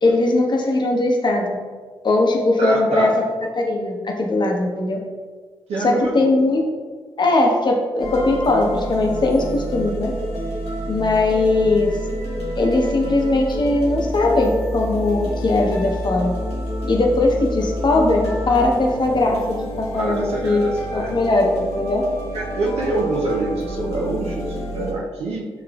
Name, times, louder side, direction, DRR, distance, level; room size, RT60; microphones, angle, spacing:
voice 1, 0.0-1.6 2.0-3.1 3.6-5.0 5.8-6.6 7.2-10.1 10.9-11.9 12.6-16.3 16.9-22.0, left 2 dB, 45° left, 1 dB, 0.8 m, -19 dB
voice 2, 2.6-3.1 5.7-6.1 9.6-9.7 19.9-21.2 22.3-25.5, right 2 dB, 85° right, -3 dB, 0.6 m, -25 dB
sound 1, 8.0-24.9, equal, 80° left, 1.0 m, -28 dB
7.0 x 2.4 x 2.3 m, 1.5 s
supercardioid pair, 50°, 10 cm